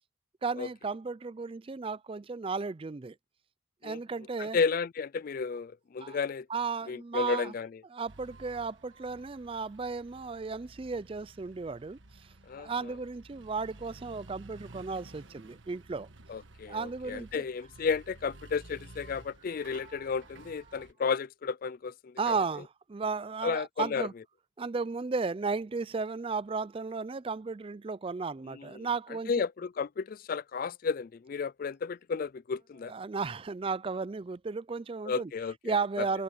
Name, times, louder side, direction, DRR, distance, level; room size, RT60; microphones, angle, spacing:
voice 1, 0.4-3.2 3.8-4.6 6.0-6.2 6.5-7.5 7.9-12.0 12.6-16.1 16.7-17.4 19.5-20.1 20.7-20.8 22.2-24.1 24.6-29.4 32.9-35.3 35.6-36.2, right 4 dB, 25° right, 0.4 m, -34 dB
voice 2, 4.4-6.5 6.9-7.8 12.5-12.9 16.3-22.3 23.4-24.1 28.5-28.9 29.3-32.9 35.1-36.1, left 5 dB, 45° left, 0.3 m, -33 dB
sound 1, 8.1-20.9, right 2 dB, 70° right, 1.5 m, -53 dB
head